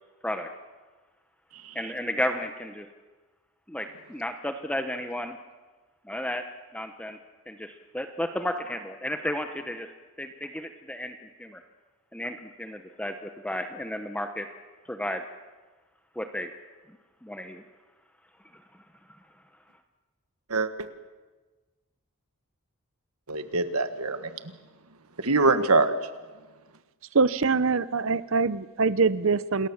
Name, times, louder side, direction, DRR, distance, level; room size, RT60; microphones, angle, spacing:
voice 1, 1.7-2.9 3.7-5.4 6.0-6.4 6.7-7.2 7.5-9.9 10.2-11.6 12.1-14.5 14.9-15.2 16.2-16.5 17.2-17.6, left 1 dB, 5° left, 6 dB, 1.0 m, -33 dB
voice 2, 23.3-24.3 25.2-25.9, right 3 dB, 85° right, 9 dB, 1.7 m, -23 dB
voice 3, 27.1-29.7, right 4 dB, 60° right, 16 dB, 0.8 m, -24 dB
28.0 x 20.5 x 7.3 m, 1.3 s
head